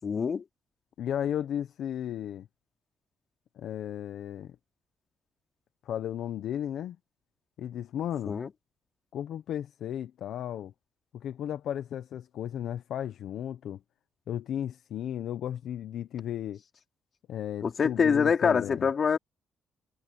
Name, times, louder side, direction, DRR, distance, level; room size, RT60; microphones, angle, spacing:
voice 1, 0.0-0.4 8.3-8.5 17.6-19.2, left 6 dB, 45° left, 4.3 m, -25 dB
voice 2, 1.0-2.5 3.6-4.6 5.8-7.0 7.6-8.3 9.1-10.7 11.1-13.8 14.3-16.6 17.3-18.9, left 10 dB, 75° left, 1.1 m, -34 dB
cardioid pair, 90°, 0 cm